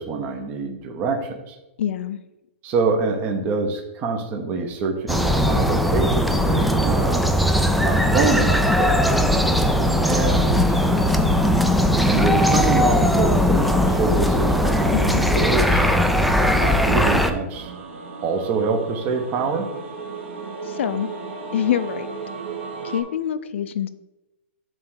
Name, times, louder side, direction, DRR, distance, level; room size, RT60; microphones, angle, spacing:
voice 1, 0.0-1.6 2.6-7.2 7.8-9.2 10.0-11.0 11.3-11.7 12.0-15.8 16.4-17.7 18.2-19.7, right 4 dB, 25° right, 3 dB, 0.8 m, -25 dB
voice 2, 1.8-2.2 14.9-15.2 20.6-21.1 21.5-22.1 22.8-23.9, left 10 dB, 65° left, 13 dB, 0.5 m, -25 dB
sound 1, 5.1-17.3, left 1 dB, ahead, 0.3 m, -19 dB
sound 2, 17.5-23.0, right 4 dB, 60° right, 1.9 m, -34 dB
7.4 x 3.2 x 6.2 m, 0.98 s
hypercardioid pair, 160°, 7 cm